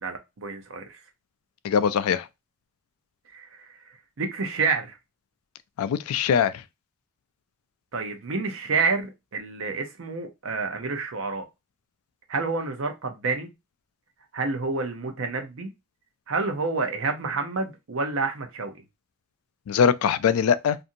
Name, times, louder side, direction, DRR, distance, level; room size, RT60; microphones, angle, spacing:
voice 1, 0.0-1.0 3.3-3.9 4.2-5.0 7.9-11.5 12.3-13.5 14.3-15.7 16.3-18.7, right 4 dB, 65° right, 0.6 m, -29 dB
voice 2, 1.6-2.3 5.8-6.5 19.7-20.8, left 7 dB, 85° left, 0.3 m, -22 dB
2.6 x 2.5 x 2.7 m
head